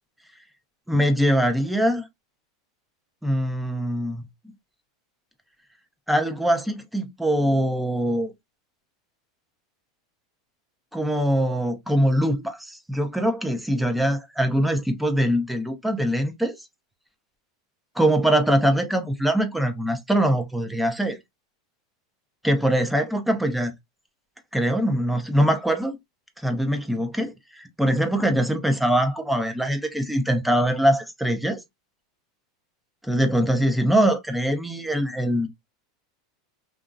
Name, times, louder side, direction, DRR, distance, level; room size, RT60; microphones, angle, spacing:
voice 1, 0.9-2.1 3.2-4.3 6.1-8.3 10.9-16.6 18.0-21.2 22.4-23.7 24.5-26.0 26.4-31.6 33.0-35.5, equal, ahead, 0.6 m, -23 dB
2.8 x 2.4 x 2.3 m
supercardioid pair, 120°, 2 cm